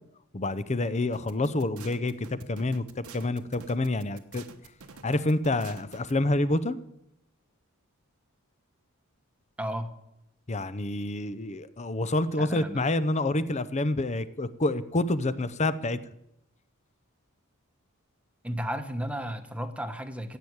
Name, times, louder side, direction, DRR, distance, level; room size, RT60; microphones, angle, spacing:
voice 1, 0.3-4.4 5.0-6.8 10.5-16.0, left 2 dB, 30° left, 14 dB, 0.7 m, -28 dB
sound 1, 1.1-6.1, right 5 dB, 85° right, 1.3 m, -48 dB
voice 2, 9.6-9.9 12.4-12.9 18.4-20.4, equal, 5° right, 7 dB, 1.1 m, -34 dB
15.5 x 8.8 x 8.1 m, 0.85 s
head